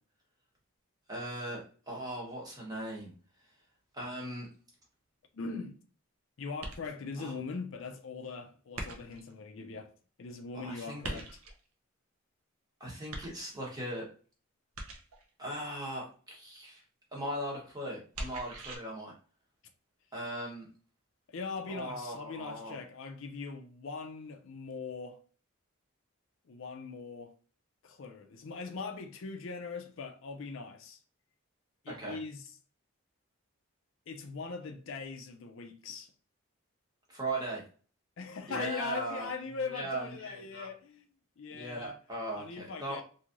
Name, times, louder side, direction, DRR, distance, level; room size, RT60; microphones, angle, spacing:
voice 1, 1.1-3.1 3.9-4.5 7.2-7.3 10.6-11.2 12.8-14.1 15.4-16.8 17.1-19.1 20.1-20.7 21.7-22.8 32.0-32.2 37.1-37.6 38.5-39.3 39.7-40.7 41.5-43.0, right 1 dB, 15° right, 0.9 m, -39 dB
voice 2, 5.3-5.7 6.4-9.9 10.2-11.4 21.3-25.2 26.5-27.3 27.8-31.0 31.8-32.5 34.1-36.1 38.2-41.0 41.4-42.0 42.3-43.0, left 4 dB, 60° left, 0.4 m, -41 dB
sound 1, 6.6-7.1 8.7-9.3 11.0-11.7 13.1-13.7 14.7-15.3 18.1-18.8, right 2 dB, 80° right, 0.7 m, -41 dB
3.0 x 2.7 x 2.4 m
head